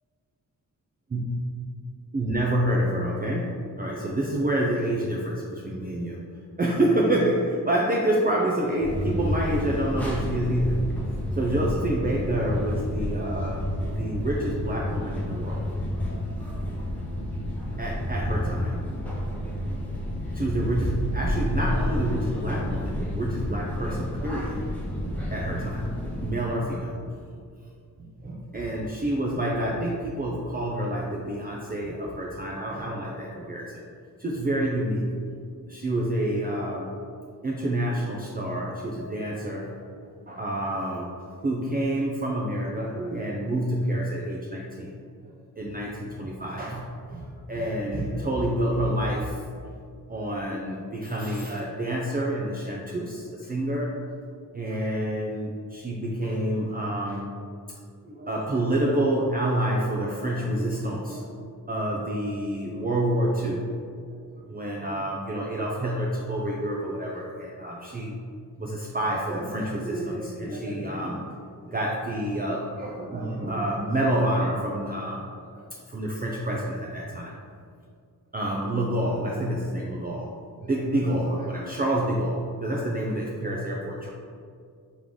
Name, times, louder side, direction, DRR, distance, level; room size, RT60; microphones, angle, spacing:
voice 1, 2.1-6.2 6.6-10.9 11.3-13.6 13.9-15.7 17.8-18.8 20.3-24.7 25.3-25.9 26.2-27.1 28.2-33.8 34.2-35.1 35.7-36.9 37.4-39.7 40.0-41.2 41.4-45.0 45.6-49.4 50.1-53.9 54.5-57.3 58.0-61.3 61.7-63.8 64.3-68.2 68.6-71.3 71.6-77.4 78.3-84.1, right 1 dB, 25° right, -3 dB, 0.4 m, -28 dB
sound 1, 8.8-26.3, equal, 5° left, 0.9 m, -30 dB
sound 2, 20.4-24.9, left 1 dB, 60° left, 1.1 m, -33 dB
3.7 x 3.0 x 3.8 m, 2.3 s
cardioid pair, 70°, 39 cm